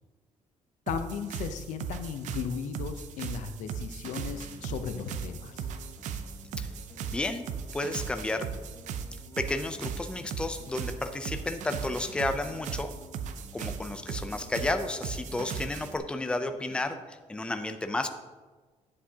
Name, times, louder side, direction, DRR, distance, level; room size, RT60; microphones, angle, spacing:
voice 1, 0.9-5.7, left 7 dB, 85° left, 8 dB, 0.7 m, -36 dB
sound 1, 0.9-16.0, right 6 dB, 80° right, 0.6 m, -38 dB
sound 2, 4.1-17.0, left 2 dB, 25° left, 1.3 m, -52 dB
voice 2, 7.1-7.4 7.7-8.5 9.4-12.9 13.5-18.1, left 2 dB, 10° left, 7 dB, 0.5 m, -32 dB
9.8 x 8.3 x 2.8 m, 1.3 s
cardioid pair, 135°, 12 cm